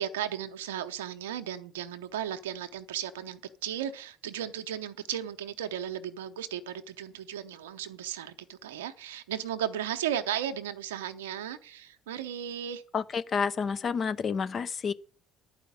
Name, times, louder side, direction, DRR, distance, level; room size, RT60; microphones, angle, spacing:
voice 1, 0.0-12.8, right 10 dB, 80° right, 0.7 m, -35 dB
voice 2, 12.9-14.9, left 6 dB, 45° left, 0.7 m, -29 dB
11.0 x 5.0 x 8.1 m
hypercardioid pair, 55°, 0 cm